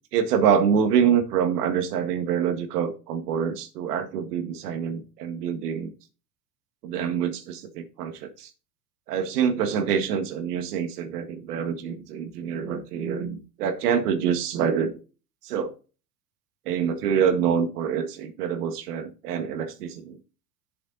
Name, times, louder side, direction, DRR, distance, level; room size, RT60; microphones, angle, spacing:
voice 1, 0.1-5.9 6.8-8.5 9.1-15.0 15.4-15.7 16.7-20.2, right 7 dB, 70° right, 8 dB, 1.8 m, -26 dB
8.6 x 7.1 x 4.0 m, 0.34 s
hypercardioid pair, 105°, 47 cm